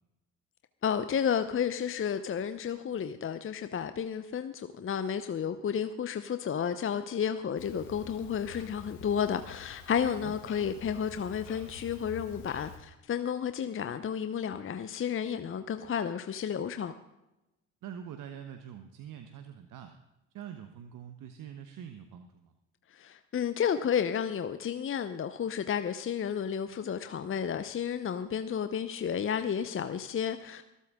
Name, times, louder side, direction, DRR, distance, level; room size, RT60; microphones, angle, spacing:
voice 1, 0.8-16.9 22.9-30.6, left 8 dB, 35° left, 10 dB, 0.8 m, -32 dB
Clock, 7.5-12.8, left 7 dB, 80° left, 3.0 m, -48 dB
voice 2, 17.8-19.9 20.3-22.5, right 9 dB, 60° right, 7 dB, 1.2 m, -44 dB
25.0 x 8.5 x 3.7 m, 0.95 s
hypercardioid pair, 60°, 37 cm